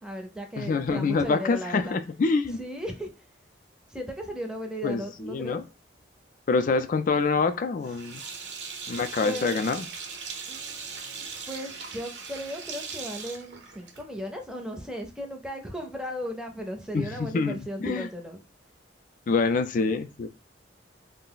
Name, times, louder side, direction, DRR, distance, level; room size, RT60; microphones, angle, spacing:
voice 1, 0.0-2.0 2.6-3.3 3.9-5.6 9.2-9.6 10.5-18.4, equal, 5° right, 2 dB, 0.5 m, -36 dB
voice 2, 0.6-2.6 4.8-5.6 6.5-8.2 8.9-9.9 16.9-17.1 17.3-18.1 19.3-20.3, left 4 dB, 45° left, 9 dB, 0.3 m, -26 dB
Sink (filling or washing), 7.8-14.2, right 5 dB, 70° right, 0.6 m, -39 dB
2.3 x 2.0 x 3.8 m, 0.31 s
head